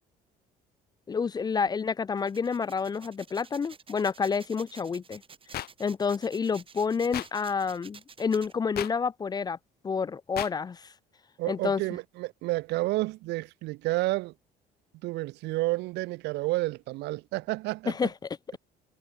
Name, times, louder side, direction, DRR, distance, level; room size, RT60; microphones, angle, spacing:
voice 1, 1.1-5.2 5.8-9.6 9.8-10.9 11.5-11.8 17.9-18.1, left 5 dB, 25° left, 0.4 m, -29 dB
sound 1, 2.2-8.5, right 5 dB, 30° right, 5.9 m, -51 dB
sound 2, 5.5-5.7 7.1-7.3 8.8-8.9 10.4-10.5, left 13 dB, 65° left, 2.8 m, -33 dB
voice 2, 11.4-14.3 15.0-18.1, right 20 dB, 85° right, 0.7 m, -30 dB
cardioid pair, 110°, 17 cm